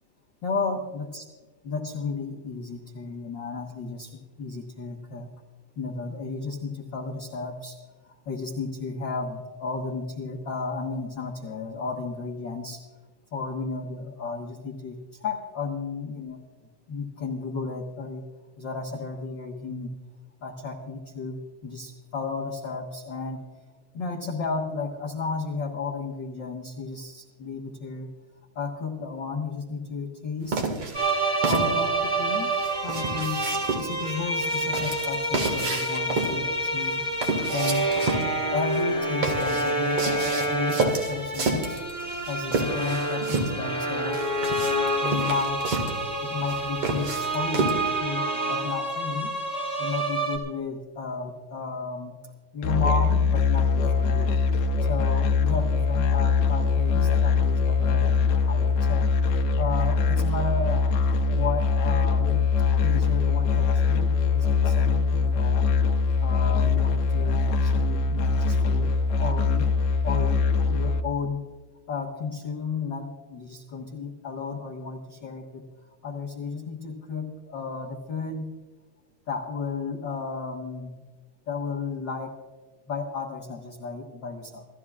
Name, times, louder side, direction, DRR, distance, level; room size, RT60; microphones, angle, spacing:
voice 1, 0.4-1.2 1.6-5.3 5.8-7.8 8.0-12.8 13.3-16.4 16.9-18.2 18.6-19.9 20.4-23.4 23.9-28.1 28.5-30.6 31.4-32.5 32.8-37.0 37.5-37.8 38.5-41.8 42.3-44.2 45.0-45.7 46.2-49.3 49.8-52.2 52.5-54.4 54.8-59.1 59.6-60.9 61.3-62.5 62.8-65.6 66.2-68.9 69.2-69.7 70.0-71.4 71.9-75.7 76.0-78.6 79.3-81.0 81.5-82.4 82.9-84.7, left 4 dB, 50° left, 0 dB, 1.4 m, -33 dB
sound 1, 30.5-48.0, right 3 dB, 45° right, 2.5 m, -30 dB
sound 2, 30.9-50.4, right 1 dB, 15° right, 3.2 m, -28 dB
Musical instrument, 52.6-71.0, left 5 dB, 70° left, 2.2 m, -22 dB
28.0 x 14.5 x 2.4 m, 1.3 s
omnidirectional pair, 3.7 m